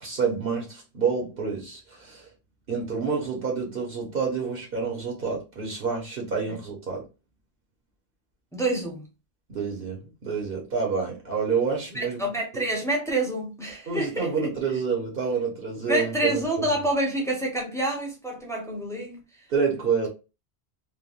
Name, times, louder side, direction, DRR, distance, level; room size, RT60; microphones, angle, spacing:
voice 1, 0.0-2.3 2.7-7.0 9.5-12.3 12.5-12.6 13.9-16.7 19.5-20.1, right 5 dB, 60° right, 1.1 m, -28 dB
voice 2, 8.5-9.0 11.9-14.5 15.9-19.2, right 1 dB, 5° left, 0.8 m, -27 dB
3.4 x 2.1 x 2.4 m
omnidirectional pair, 1.1 m